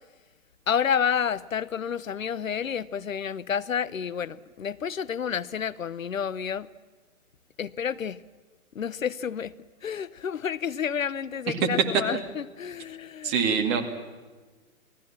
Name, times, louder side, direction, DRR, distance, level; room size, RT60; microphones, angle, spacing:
voice 1, 0.7-6.7 7.6-8.2 8.7-9.5 9.8-13.4, left 7 dB, 65° left, 0.9 m, -30 dB
voice 2, 13.2-13.8, right 6 dB, 25° right, 2.3 m, -24 dB
28.5 x 19.0 x 7.4 m
figure-of-eight pair, 130°, 43 cm